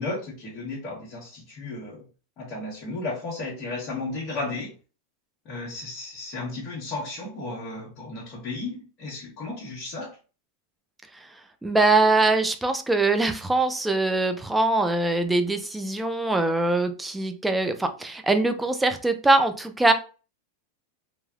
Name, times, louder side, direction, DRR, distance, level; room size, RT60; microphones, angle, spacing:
voice 1, 0.0-2.0 2.4-4.7 5.4-10.2, left 3 dB, 40° left, -7 dB, 1.2 m, -34 dB
voice 2, 11.6-19.9, right 2 dB, 5° right, 7 dB, 0.3 m, -22 dB
3.2 x 2.2 x 2.3 m, 0.35 s
supercardioid pair, 140°, 0 cm